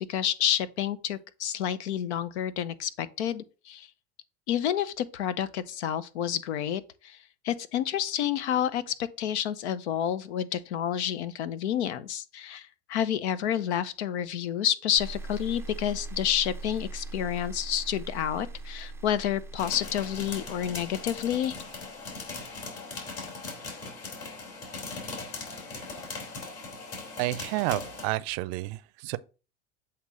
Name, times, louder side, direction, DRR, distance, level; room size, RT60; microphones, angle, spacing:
voice 1, 0.0-3.9 4.5-7.2 7.4-21.6, left 10 dB, 80° left, 0.7 m, -29 dB
sound 1, 15.0-22.1, right 2 dB, 10° right, 0.4 m, -41 dB
sound 2, 19.6-28.1, left 3 dB, 45° left, 2.8 m, -39 dB
voice 2, 27.2-29.2, right 19 dB, 65° right, 0.5 m, -30 dB
7.9 x 2.9 x 4.8 m
hypercardioid pair, 95°, 33 cm